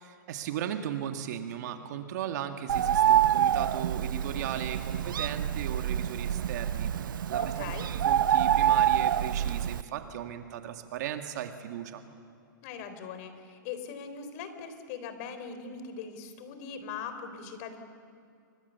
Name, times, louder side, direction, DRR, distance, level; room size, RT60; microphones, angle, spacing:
voice 1, 0.3-7.7 8.0-12.0, right 10 dB, 55° right, 6 dB, 2.0 m, -37 dB
Bird, 2.7-9.8, right 10 dB, 75° right, 0.7 m, -26 dB
voice 2, 7.4-7.9 12.6-17.8, left 6 dB, 45° left, 9 dB, 3.6 m, -40 dB
29.0 x 24.0 x 7.0 m, 2.5 s
hypercardioid pair, 135°, 11 cm